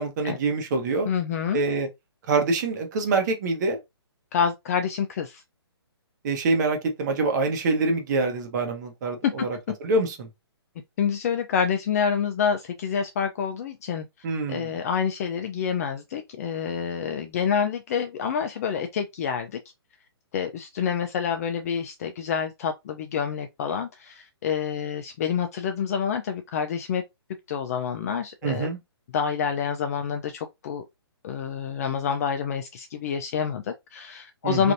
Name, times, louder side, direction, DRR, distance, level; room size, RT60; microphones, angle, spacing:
voice 1, 0.0-1.1 1.5-1.9 2.3-3.8 6.2-9.5 9.8-10.3 14.2-14.7 28.4-28.8 34.4-34.7, right 3 dB, 45° right, 1.0 m, -25 dB
voice 2, 1.1-1.6 4.3-5.4 9.2-9.3 11.0-14.1 14.5-19.6 20.3-27.0 27.5-28.7 29.1-30.8 31.2-34.7, left 7 dB, 35° left, 0.3 m, -27 dB
3.3 x 2.5 x 2.5 m
hypercardioid pair, 145°, 14 cm